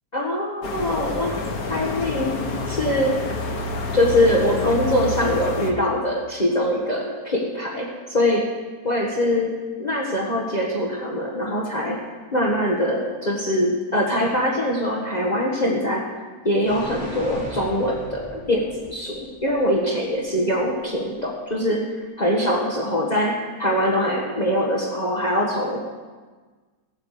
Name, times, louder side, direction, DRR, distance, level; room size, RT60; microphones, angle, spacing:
voice 1, 0.1-2.3 2.7-3.2 3.9-8.5 8.8-12.0 12.3-16.1 16.4-25.9, left 1 dB, 30° left, -2 dB, 1.5 m, -23 dB
sound 1, 0.6-5.7, left 3 dB, 75° left, 1.8 m, -28 dB
sound 2, 16.7-19.6 19.8-19.9, equal, 5° right, 3.2 m, -37 dB
17.5 x 7.4 x 6.7 m, 1.4 s
omnidirectional pair, 1.6 m